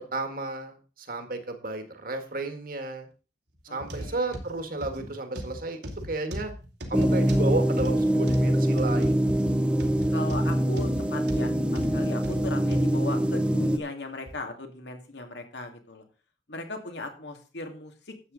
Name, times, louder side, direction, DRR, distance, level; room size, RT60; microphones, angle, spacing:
voice 1, 0.0-3.1 3.7-6.5 6.9-9.3, right 2 dB, 55° right, 6 dB, 1.8 m, -33 dB
voice 2, 3.7-4.3 10.1-11.5 11.9-16.0 16.5-18.3, left 2 dB, 80° left, 4 dB, 2.4 m, -38 dB
sound 1, 3.8-12.9 13.5-13.6 14.3-14.4, equal, 90° right, 3.0 m, -37 dB
sound 2, 6.9-13.8, right 1 dB, 5° right, 0.8 m, -24 dB
12.0 x 8.5 x 4.0 m, 0.35 s
head